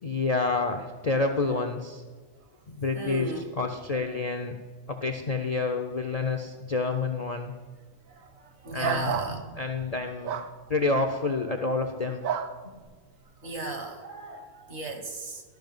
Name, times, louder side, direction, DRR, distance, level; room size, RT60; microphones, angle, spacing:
voice 1, 0.0-2.0 2.7-4.5 4.9-7.5 8.7-9.1 9.6-10.4 10.7-12.2, left 3 dB, 50° left, 3 dB, 0.4 m, -28 dB
voice 2, 2.9-3.4 8.2-8.3 8.6-9.5 13.4-15.4, right 2 dB, 60° right, 6 dB, 1.4 m, -35 dB
sound 1, 8.8-9.3 10.2-10.5 12.2-12.5, right 8 dB, 85° right, 1.0 m, -29 dB
12.0 x 5.5 x 5.3 m, 1.5 s
omnidirectional pair, 1.4 m